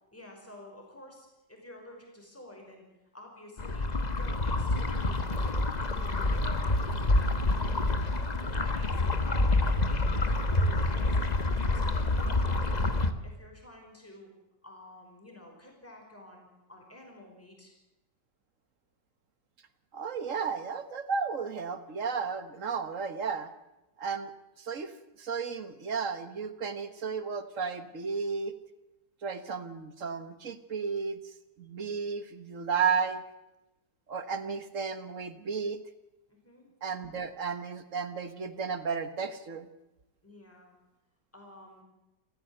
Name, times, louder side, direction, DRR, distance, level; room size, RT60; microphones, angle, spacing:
voice 1, 0.1-2.9 3.1-3.9 4.2-5.6 5.9-7.2 7.5-8.1 8.4-11.4 11.7-12.9 13.2-14.3 14.6-17.7 36.3-36.7 40.2-40.7 41.3-41.8, left 1 dB, 5° left, 1 dB, 5.5 m, -50 dB
sound 1, 3.6-13.1, left 2 dB, 25° left, 1.2 m, -27 dB
voice 2, 19.9-23.5 24.0-24.3 24.6-28.6 29.2-31.2 31.6-33.2 34.1-35.8 36.8-39.7, right 5 dB, 45° right, 11 dB, 1.7 m, -33 dB
29.0 x 14.5 x 7.9 m, 0.97 s
omnidirectional pair, 1.9 m